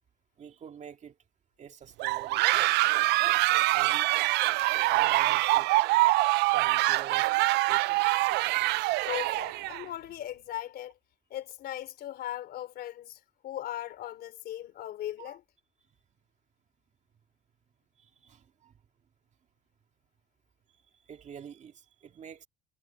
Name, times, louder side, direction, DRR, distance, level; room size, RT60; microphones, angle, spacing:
voice 1, 0.4-1.2 1.6-3.0 3.7-4.1 4.9-5.7 6.4-7.3 7.7-8.0 15.2-15.4 18.0-18.7 21.1-22.5, right 8 dB, 45° right, 2.1 m, -47 dB
sound 1, 2.0-9.8, right 20 dB, 85° right, 0.4 m, -25 dB
voice 2, 9.1-10.9 11.3-15.4, left 12 dB, 70° left, 3.3 m, -38 dB
cardioid pair, 110°, 17 cm